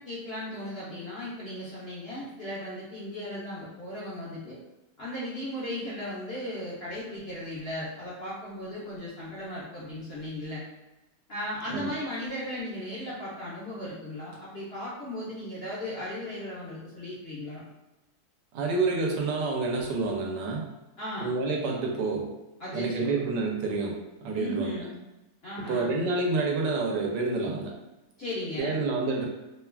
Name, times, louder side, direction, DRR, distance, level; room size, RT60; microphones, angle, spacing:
voice 1, 0.1-4.6 5.0-10.6 11.3-17.6 21.0-21.4 22.6-23.2 24.2-24.9 25.4-25.9 28.2-28.9, left 1 dB, 55° left, -9 dB, 0.7 m, -36 dB
voice 2, 18.5-20.6 21.2-22.2 22.7-23.9 24.2-24.8 25.6-27.7 28.6-29.3, right 3 dB, 85° right, 0 dB, 1.2 m, -28 dB
3.0 x 2.2 x 2.2 m, 1.0 s
omnidirectional pair, 1.8 m